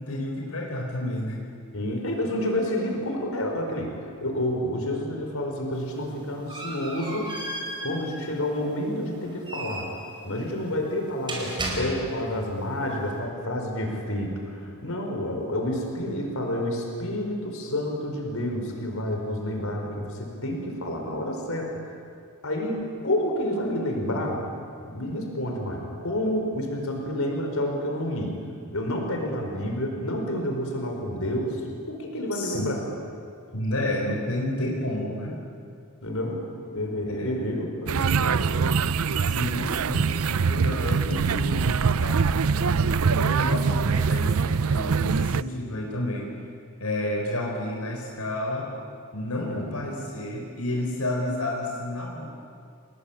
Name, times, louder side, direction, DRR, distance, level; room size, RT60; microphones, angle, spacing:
voice 1, 0.0-1.4 32.3-32.7 33.5-35.4 37.1-37.4 39.2-46.3 46.8-48.7 49.1-52.3, left 1 dB, 85° left, -1 dB, 4.2 m, -30 dB
voice 2, 1.7-3.9 4.2-7.3 7.8-9.9 10.2-21.8 22.4-24.4 24.8-28.4 28.7-31.6 31.9-32.8 36.0-38.9 49.5-49.6, left 1 dB, 65° left, 2 dB, 5.0 m, -29 dB
sound 1, 5.7-12.4, right 1 dB, 20° right, 5.2 m, -36 dB
sound 2, 37.9-45.4, right 5 dB, 70° right, 0.6 m, -23 dB
29.5 x 20.5 x 8.7 m, 2.3 s
head